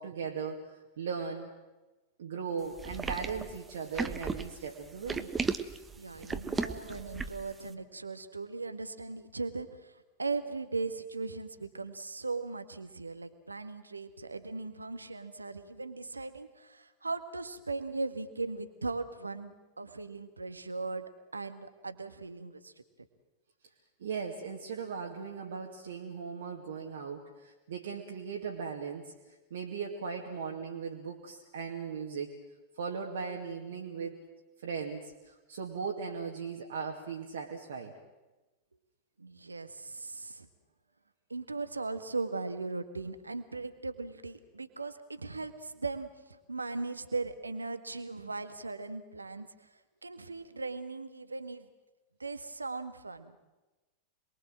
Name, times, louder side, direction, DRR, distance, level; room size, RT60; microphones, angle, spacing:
voice 1, 0.0-1.5 2.2-5.3 24.0-29.1 29.5-32.4 32.8-34.2 34.6-38.0, right 5 dB, 60° right, 0 dB, 2.3 m, -38 dB
sound 1, 2.8-7.5, right 4 dB, 15° right, 1.3 m, -35 dB
voice 2, 6.0-22.7 39.2-40.5 41.3-49.7 50.0-51.7 52.2-53.4, right 3 dB, 80° right, 10 dB, 1.7 m, -38 dB
27.5 x 22.0 x 7.7 m, 1.1 s
figure-of-eight pair, 90°, 0 cm